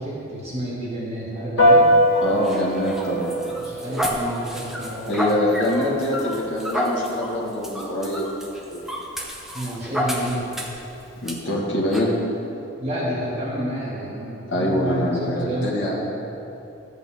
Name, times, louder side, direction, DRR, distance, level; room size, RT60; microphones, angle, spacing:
voice 1, 0.0-1.8 3.6-5.3 9.5-10.4 12.8-16.1, right 1 dB, 30° right, -8 dB, 2.1 m, -29 dB
Piano, 1.6-11.3, equal, 85° left, 1.6 m, -25 dB
sound 1, 2.1-10.8 11.3-11.4 11.9-12.1, equal, ahead, 0.7 m, -30 dB
voice 2, 2.2-3.4 5.1-8.3 8.7-9.0 11.2-12.2 14.5-16.0, left 1 dB, 65° left, -4 dB, 1.7 m, -24 dB
12.0 x 8.1 x 3.6 m, 2.8 s
head